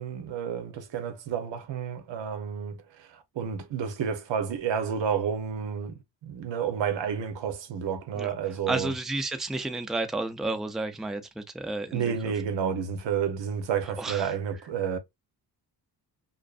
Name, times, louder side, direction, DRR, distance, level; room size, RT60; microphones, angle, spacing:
voice 1, 0.0-8.9 11.9-15.0, right 7 dB, 85° right, 0.7 m, -30 dB
voice 2, 8.7-12.3 13.8-14.3, right 2 dB, ahead, 0.4 m, -32 dB
2.5 x 2.5 x 2.3 m
cardioid pair, 75°, 43 cm